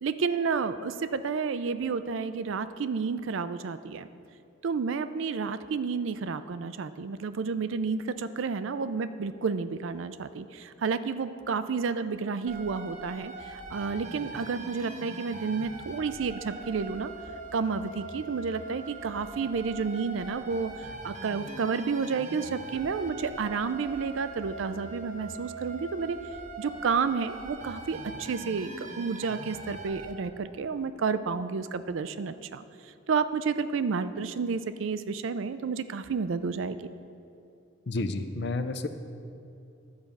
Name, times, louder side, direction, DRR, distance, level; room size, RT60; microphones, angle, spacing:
voice 1, 0.0-4.1 4.6-17.1 17.5-26.2 26.6-36.8, right 5 dB, 70° right, 12 dB, 0.4 m, -31 dB
sound 1, 12.5-30.1, right 2 dB, 35° right, 0.7 m, -42 dB
voice 2, 37.9-38.9, left 2 dB, 55° left, 9 dB, 0.5 m, -30 dB
11.0 x 5.2 x 7.1 m, 2.6 s
head